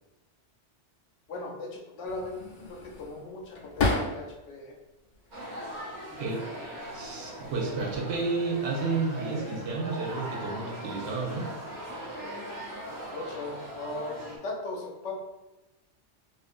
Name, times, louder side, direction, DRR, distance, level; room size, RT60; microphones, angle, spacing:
voice 1, 1.3-2.4 2.7-4.7 13.1-15.1, left 2 dB, 90° left, -1 dB, 0.9 m, -38 dB
sound 1, 2.0-4.5 5.0-5.8 6.7-7.1 7.4-8.2, left 3 dB, 65° left, 0.7 m, -33 dB
sound 2, 5.3-14.4, right 1 dB, 50° right, 0.6 m, -40 dB
voice 2, 6.9-11.5, right 3 dB, 70° right, -1 dB, 0.9 m, -31 dB
2.4 x 2.4 x 2.5 m, 1.0 s
omnidirectional pair, 1.2 m